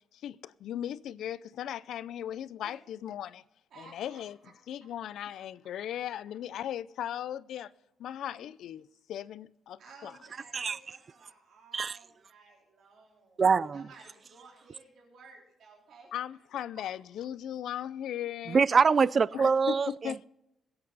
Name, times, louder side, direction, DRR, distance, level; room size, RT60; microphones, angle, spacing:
voice 1, 0.0-3.4 3.8-4.4 4.7-7.7 8.0-10.1 16.1-18.6 19.3-20.2, left 10 dB, 80° left, 0.5 m, -38 dB
voice 2, 3.7-4.2 8.3-8.5 9.8-13.4 13.7-16.1 16.7-16.8, right 4 dB, 65° right, 4.0 m, -55 dB
voice 3, 13.4-13.9 18.5-20.2, right 5 dB, 40° right, 0.3 m, -24 dB
21.5 x 8.8 x 4.1 m
cardioid pair, 120°, 0 cm